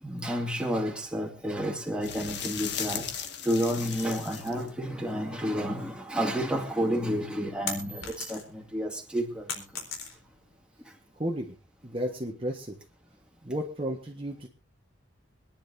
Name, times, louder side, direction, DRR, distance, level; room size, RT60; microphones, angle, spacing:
voice 1, 0.0-9.6, equal, 5° right, 1 dB, 2.2 m, -31 dB
sound 1, 2.0-4.7 6.9-7.0, left 8 dB, 55° left, 1.7 m, -36 dB
sound 2, 7.7-8.7 9.0-10.5, left 5 dB, 80° left, 4.1 m, -37 dB
voice 2, 11.1-11.6 11.8-12.8 13.4-14.5, equal, 25° right, 1 dB, 1.4 m, -33 dB
25.5 x 10.5 x 2.7 m, 0.31 s
head